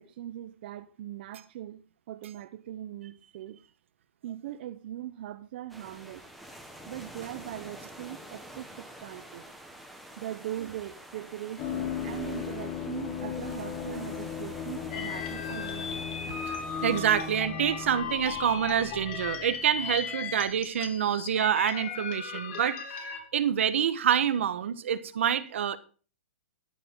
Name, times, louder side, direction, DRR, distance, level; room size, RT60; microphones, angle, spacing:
voice 1, 0.0-3.6 4.2-6.2 6.9-9.4 10.2-15.9, right 13 dB, 50° right, 0.8 m, -40 dB
sound 1, 5.7-17.4, right 1 dB, ahead, 1.4 m, -48 dB
sound 2, 11.6-20.1 20.3-20.5, left 7 dB, 30° left, 3.5 m, -37 dB
sound 3, 14.9-23.2, left 6 dB, 50° left, 3.0 m, -37 dB
voice 2, 16.8-22.8 23.3-25.8, right 9 dB, 70° right, 1.2 m, -27 dB
13.5 x 10.0 x 3.7 m
hypercardioid pair, 155°, 7 cm